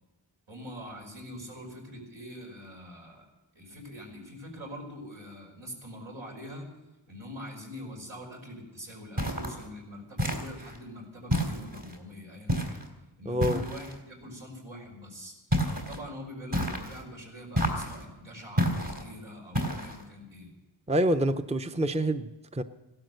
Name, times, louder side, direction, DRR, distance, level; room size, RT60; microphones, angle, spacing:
voice 1, 0.5-3.3 3.5-6.7 7.1-12.8 13.2-15.3 15.8-20.5, left 1 dB, 85° right, -1 dB, 5.3 m, -44 dB
sound 1, 9.2-9.6 10.2-10.8 11.3-12.0 12.5-12.9 13.4-14.0 15.5-16.0 16.5-17.0 17.5-18.0 18.6-19.0 19.5-20.0, equal, 55° right, 3.4 m, -29 dB
voice 2, 13.3-13.6 20.9-22.6, right 1 dB, 15° right, 9 dB, 0.6 m, -27 dB
16.5 x 12.5 x 6.5 m, 1.1 s
wide cardioid pair, 60°, 46 cm